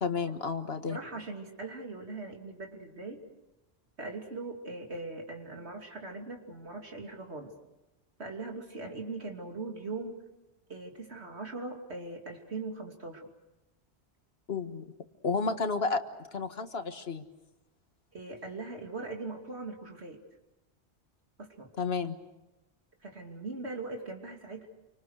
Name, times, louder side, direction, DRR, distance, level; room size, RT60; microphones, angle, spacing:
voice 1, 0.0-1.0 14.5-14.8 15.2-16.0 16.3-17.2 21.8-22.2, left 4 dB, 65° left, 8 dB, 1.7 m, -31 dB
voice 2, 0.9-3.2 4.0-7.5 8.2-10.2 10.7-13.3 18.1-20.2 21.4-21.7 23.0-24.7, right 3 dB, 80° right, 2 dB, 3.1 m, -40 dB
28.5 x 25.0 x 6.5 m, 1.0 s
omnidirectional pair, 1.1 m